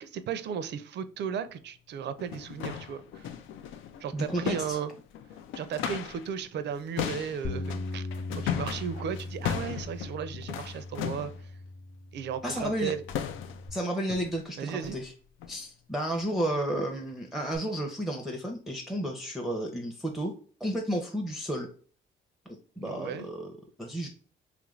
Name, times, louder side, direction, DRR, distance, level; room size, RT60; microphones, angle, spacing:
voice 1, 0.0-3.3 4.0-4.9 5.5-8.0 8.3-11.3 12.1-13.0 14.6-15.0 22.8-23.3, right 8 dB, 60° right, 0.5 m, -35 dB
sound 1, 1.5-1.6 2.1-6.3 6.6-11.4 12.6-12.8 13.1-13.7 14.1-14.4 14.8-15.1 15.4-15.6 16.1-16.3 16.8-16.9 17.5-17.6, left 9 dB, 80° left, 0.4 m, -37 dB
voice 2, 4.1-4.8 12.4-12.9 13.7-15.1 15.5-20.3 20.6-21.7 22.5-24.1, right 1 dB, ahead, 0.5 m, -32 dB
Bass guitar, 7.4-13.7, left 2 dB, 45° left, 0.7 m, -39 dB
3.0 x 2.5 x 3.0 m
cardioid pair, 90°, 20 cm